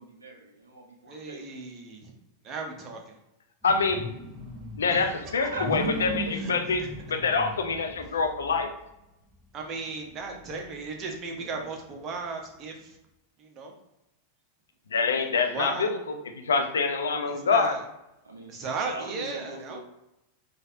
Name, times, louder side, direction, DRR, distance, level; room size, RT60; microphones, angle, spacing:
voice 1, 0.0-1.5 4.9-6.3 11.3-11.7 18.2-19.8, right 2 dB, 75° right, 1 dB, 0.5 m, -41 dB
voice 2, 1.1-2.1 2.4-3.1 4.9-5.2 6.3-6.5 6.8-6.9 8.0-8.2 9.5-13.0 13.4-13.7 15.4-15.9 17.2-17.9 18.5-19.8, right 4 dB, 30° right, 2 dB, 0.6 m, -36 dB
voice 3, 3.6-4.0 4.8-6.8 7.1-8.7 14.9-15.9 16.5-17.7, left 4 dB, 70° left, 5 dB, 0.4 m, -25 dB
sound 1, 3.6-8.7 9.3-9.4 9.8-11.5, equal, 5° left, 0.8 m, -37 dB
3.2 x 2.4 x 2.5 m, 0.90 s
figure-of-eight pair, 90°, 0 cm